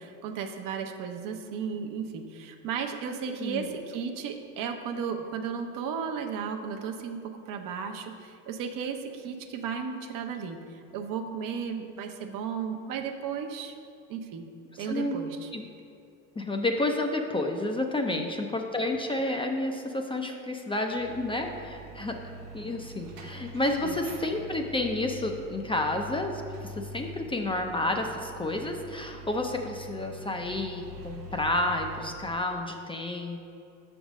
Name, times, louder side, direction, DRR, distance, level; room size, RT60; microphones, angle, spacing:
voice 1, 0.0-13.7 14.1-14.5 14.8-15.5 18.1-18.3 22.1-22.2 23.8-24.0, right 6 dB, 60° right, 5 dB, 0.8 m, -34 dB
voice 2, 3.4-3.7 14.9-15.2 15.5-15.7 16.4-22.2 22.5-33.4, left 2 dB, 15° left, 3 dB, 0.5 m, -30 dB
sound 1, 20.9-32.4, right 1 dB, 80° right, 1.1 m, -44 dB
6.2 x 3.5 x 6.1 m, 2.5 s
supercardioid pair, 85°, 37 cm